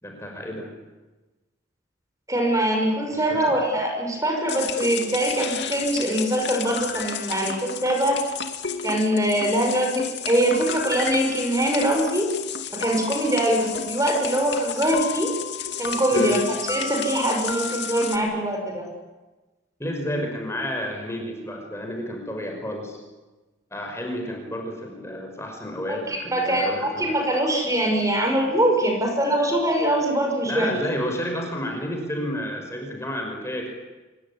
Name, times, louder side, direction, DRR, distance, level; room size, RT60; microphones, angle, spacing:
voice 1, 0.0-0.7 3.1-3.5 16.1-16.4 19.8-23.0 23.7-27.1 30.5-33.7, equal, 15° left, 2 dB, 5.6 m, -31 dB
voice 2, 2.3-8.2 8.8-12.3 12.7-15.3 15.8-18.9 25.9-30.7, right 1 dB, 15° right, 2 dB, 5.9 m, -23 dB
sound 1, 4.5-18.2, left 6 dB, 65° left, 2.6 m, -31 dB
26.5 x 22.0 x 9.9 m, 1.2 s
head